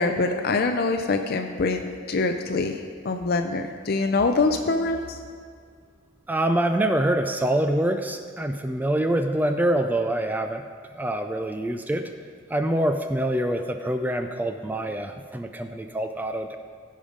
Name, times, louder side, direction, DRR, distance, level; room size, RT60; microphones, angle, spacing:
voice 1, 0.0-2.7 3.0-5.2, left 3 dB, 50° left, 6 dB, 0.5 m, -24 dB
voice 2, 6.3-10.6 11.0-12.1 12.5-16.6, right 1 dB, 10° right, 7 dB, 0.3 m, -25 dB
15.5 x 5.5 x 5.0 m, 2.1 s
head